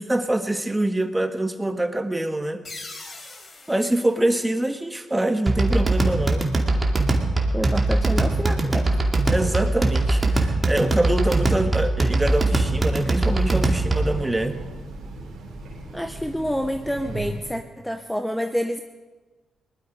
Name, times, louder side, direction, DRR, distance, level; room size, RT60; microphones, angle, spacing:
voice 1, 0.0-2.6 3.7-6.5 9.3-14.6, right 1 dB, 15° right, 8 dB, 1.5 m, -24 dB
sound 1, 2.6-5.2, left 3 dB, 50° left, 3.6 m, -42 dB
sound 2, 5.5-14.2, right 2 dB, 30° right, 2.4 m, -21 dB
voice 2, 7.5-9.0 15.9-18.8, equal, 5° left, 7 dB, 0.9 m, -28 dB
Train, 12.7-17.6, right 2 dB, 75° right, 3.4 m, -37 dB
19.5 x 12.5 x 5.0 m, 1.3 s
supercardioid pair, 50°, 0 cm